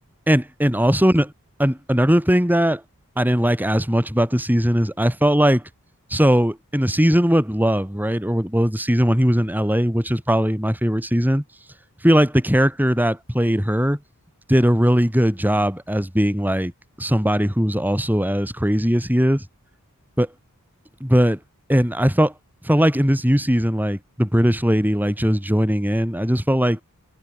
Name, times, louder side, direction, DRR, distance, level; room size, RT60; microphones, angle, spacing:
voice 1, 0.3-1.3 1.6-2.8 3.2-5.6 6.1-11.4 12.0-14.0 14.5-16.7 17.0-19.4 20.2-20.3 21.0-21.4 21.7-22.3 22.6-26.8, equal, 10° right, 6.1 m, -19 dB
head